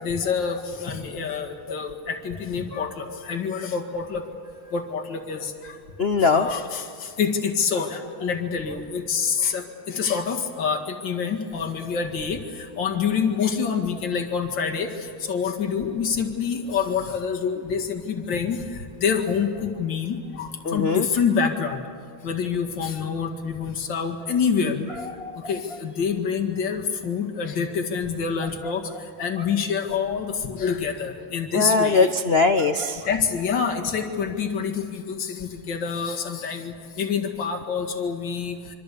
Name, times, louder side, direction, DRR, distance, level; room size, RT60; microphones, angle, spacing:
voice 1, 0.0-4.2 4.7-5.8 6.2-14.9 15.2-18.6 19.0-21.8 22.2-24.7 25.5-28.8 29.2-32.1 33.0-38.6, left 6 dB, 60° left, 4 dB, 2.7 m, -26 dB
voice 2, 6.0-6.5 7.7-8.0 8.7-8.8 9.4-9.5 20.6-21.1 21.4-21.5 24.6-25.8 28.4-29.0 29.4-29.5 31.5-33.2, left 4 dB, 80° left, 8 dB, 0.5 m, -24 dB
25.5 x 25.0 x 8.4 m, 2.3 s
omnidirectional pair, 2.3 m